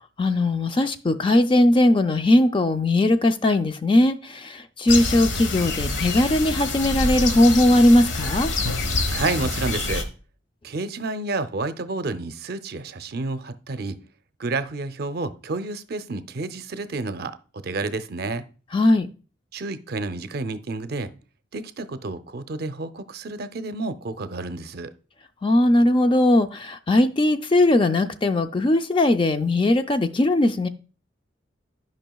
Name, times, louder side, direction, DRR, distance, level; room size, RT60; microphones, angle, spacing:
voice 1, 0.0-8.5 18.7-19.1 25.4-30.7, left 1 dB, 25° left, 0.4 m, -19 dB
sound 1, 4.9-10.0, left 3 dB, 90° left, 1.0 m, -26 dB
voice 2, 9.1-10.1 10.6-14.0 14.4-17.4 17.6-18.4 19.5-21.1 21.5-24.9, right 3 dB, 55° right, 0.5 m, -30 dB
12.0 x 5.4 x 2.3 m
head